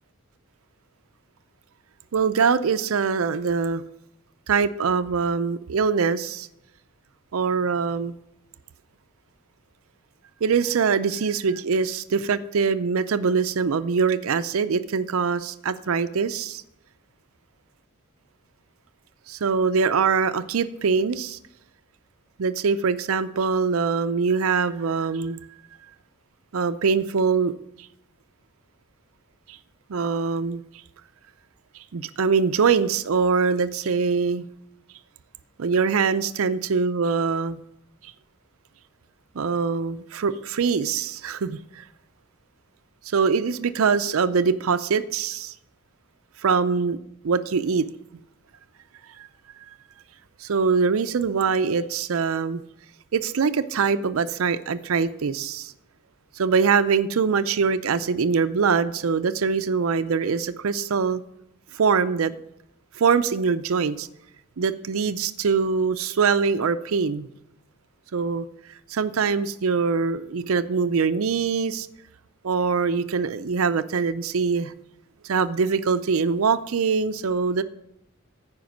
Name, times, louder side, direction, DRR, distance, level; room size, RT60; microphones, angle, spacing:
voice 1, 2.1-3.8 4.5-6.5 7.3-8.2 10.4-16.6 19.3-21.4 22.4-25.4 26.5-27.5 29.5-29.6 29.9-30.6 31.9-34.5 35.6-37.6 39.3-41.8 43.1-45.5 46.4-47.0 47.2-47.9 49.2-49.3 50.4-52.6 53.1-55.7 56.4-61.2 61.7-62.3 63.0-64.1 64.6-67.3 68.1-68.5 68.9-71.9 72.4-74.7 75.2-77.6, right 5 dB, 75° right, 12 dB, 0.5 m, -23 dB
14.5 x 5.1 x 6.3 m, 0.80 s
head